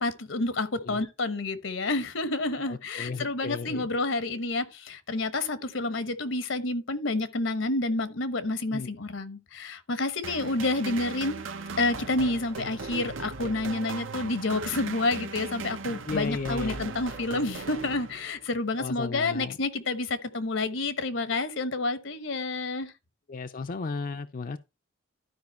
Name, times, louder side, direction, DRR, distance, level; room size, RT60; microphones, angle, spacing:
voice 1, 0.0-11.4 11.8-22.9, left 2 dB, 80° left, 1.1 m, -29 dB
voice 2, 2.6-3.9 8.7-8.9 16.1-16.8 18.8-19.6 23.3-24.6, left 4 dB, 45° left, 0.5 m, -34 dB
sound 1, 10.2-18.6, right 4 dB, 90° right, 1.0 m, -38 dB
12.0 x 5.0 x 4.3 m
head